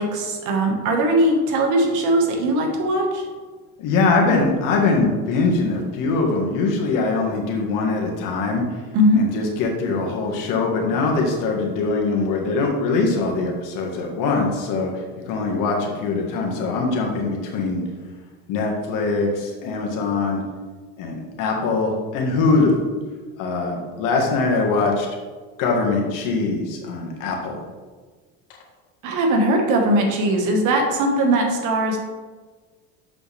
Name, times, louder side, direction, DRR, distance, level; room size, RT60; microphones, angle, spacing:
voice 1, 0.0-3.3 8.9-9.2 29.0-32.0, right 1 dB, 60° right, 2 dB, 1.7 m, -20 dB
voice 2, 3.8-8.6 9.1-14.9 15.3-17.8 18.5-20.4 21.0-22.8 23.4-25.1 25.6-27.6, left 3 dB, 65° left, 0 dB, 1.7 m, -22 dB
7.1 x 6.0 x 3.5 m, 1.4 s
cardioid pair, 120°, 35 cm